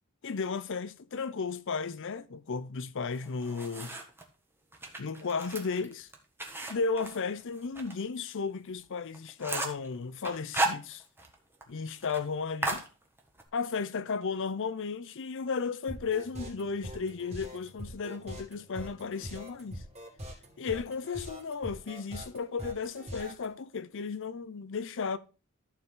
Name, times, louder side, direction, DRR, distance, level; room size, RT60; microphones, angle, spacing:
voice 1, 0.2-4.0 5.0-6.1 6.7-11.0 11.7-12.9 13.5-19.8 20.6-25.2, left 5 dB, 60° left, 0.6 m, -34 dB
sound 1, 3.1-4.2 4.7-7.9 8.3-8.4 8.8-8.9 9.1-9.9 10.2-11.3 11.6-11.7 12.0-12.2 12.6-13.5, right 2 dB, 10° right, 1.4 m, -35 dB
sound 2, 15.9-23.5, equal, 30° right, 2.7 m, -43 dB
14.0 x 4.8 x 3.7 m
head